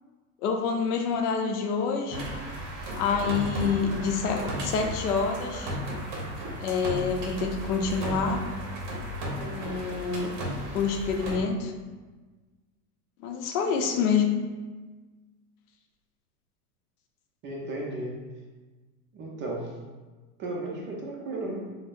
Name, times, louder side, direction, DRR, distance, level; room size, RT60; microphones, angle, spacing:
voice 1, 0.4-2.3 3.0-5.8 6.6-8.5 9.5-10.4 10.7-11.7 13.2-14.3, left 5 dB, 90° left, 3 dB, 0.6 m, -27 dB
sound 1, 2.1-11.4, equal, 50° right, 0.8 m, -34 dB
voice 2, 17.4-18.2 19.1-19.7 20.4-21.7, right 2 dB, 25° right, -2 dB, 0.5 m, -34 dB
3.8 x 2.0 x 2.4 m, 1.3 s
supercardioid pair, 130°, 44 cm